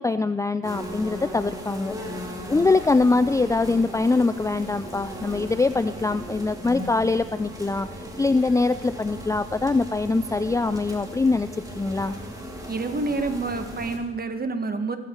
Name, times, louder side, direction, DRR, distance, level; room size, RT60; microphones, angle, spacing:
voice 1, 0.0-1.9 2.5-7.9 8.2-12.2, left 3 dB, 10° left, 11 dB, 0.4 m, -23 dB
sound 1, 0.6-14.0, equal, 10° right, 2.9 m, -37 dB
voice 2, 12.7-15.0, right 3 dB, 30° right, 7 dB, 1.6 m, -28 dB
14.5 x 14.0 x 4.6 m, 1.4 s
cardioid pair, 95°, 29 cm